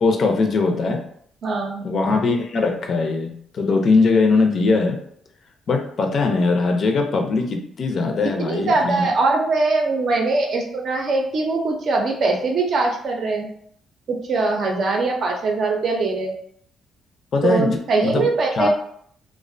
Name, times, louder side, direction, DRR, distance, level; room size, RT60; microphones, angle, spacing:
voice 1, 0.0-1.1 1.8-5.0 5.7-9.1 17.3-18.3 18.6-18.7, left 3 dB, 55° left, 4 dB, 0.4 m, -20 dB
voice 2, 1.4-1.9 8.4-13.5 14.1-16.4 17.4-18.7, right 3 dB, 60° right, 1 dB, 0.5 m, -22 dB
2.4 x 2.1 x 2.5 m, 0.65 s
cardioid pair, 90°, 0 cm